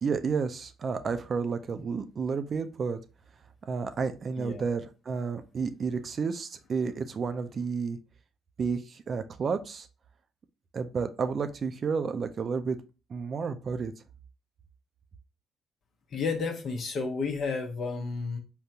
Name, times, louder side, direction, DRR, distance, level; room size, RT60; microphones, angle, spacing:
voice 1, 0.0-3.0 3.6-8.0 8.6-9.9 10.7-12.8 13.1-13.9, right 5 dB, 50° right, 9 dB, 0.4 m, -31 dB
voice 2, 16.1-18.4, left 4 dB, 60° left, 3 dB, 0.9 m, -31 dB
3.6 x 2.2 x 2.7 m, 0.31 s
supercardioid pair, 60°, 0 cm